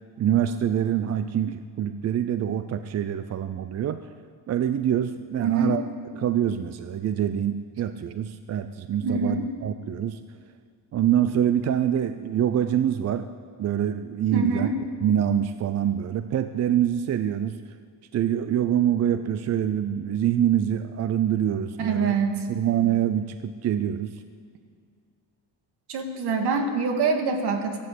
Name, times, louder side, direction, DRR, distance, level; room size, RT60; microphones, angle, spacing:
voice 1, 0.2-4.0 4.5-5.8 6.1-10.2 10.9-13.3 13.6-14.7 15.0-17.6 18.1-22.1 22.5-24.2, right 10 dB, 40° right, 11 dB, 0.5 m, -25 dB
voice 2, 5.4-5.8 9.0-9.5 14.3-14.7 21.8-22.4 25.9-27.8, right 4 dB, 70° right, 5 dB, 2.1 m, -25 dB
14.5 x 12.0 x 8.3 m, 2.2 s
cardioid pair, 150°, 41 cm